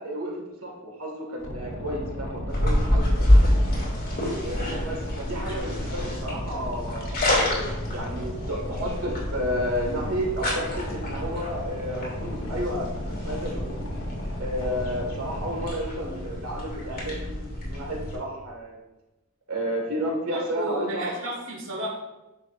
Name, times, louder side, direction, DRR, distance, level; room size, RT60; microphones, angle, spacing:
voice 1, 0.0-3.4 4.4-7.2 7.9-13.9 14.4-18.8 19.5-21.1, equal, 85° right, 0 dB, 1.8 m, -32 dB
Boat Water vehicle, 1.4-15.7, equal, 60° left, 1.3 m, -35 dB
sound 1, 2.5-18.2, left 1 dB, 45° left, 2.5 m, -27 dB
voice 2, 4.5-4.8 20.3-21.9, right 1 dB, 70° right, -4 dB, 1.5 m, -33 dB
9.7 x 6.2 x 2.5 m, 1.0 s
head